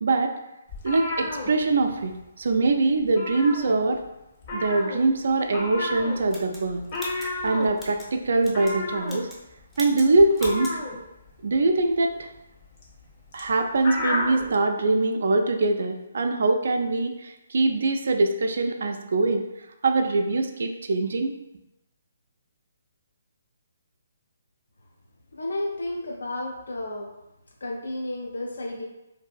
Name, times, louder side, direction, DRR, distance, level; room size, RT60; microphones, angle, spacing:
voice 1, 0.0-0.3 0.8-4.0 4.5-6.9 7.4-9.3 9.8-10.8 11.4-12.3 13.3-19.4 19.8-21.3, right 2 dB, 65° right, 5 dB, 0.3 m, -23 dB
sound 1, 0.7-2.2 2.5-2.7 3.0-4.1 4.4-14.5, left 2 dB, 40° left, 0.7 m, -32 dB
sound 2, 6.3-8.1 8.4-8.8 9.0-9.4 9.7-10.1 10.3-10.8, equal, 5° left, 0.5 m, -40 dB
voice 2, 25.3-27.1 27.6-28.8, left 1 dB, 75° left, 0 dB, 0.4 m, -32 dB
2.6 x 2.5 x 2.3 m, 0.94 s
figure-of-eight pair, 145°, 0 cm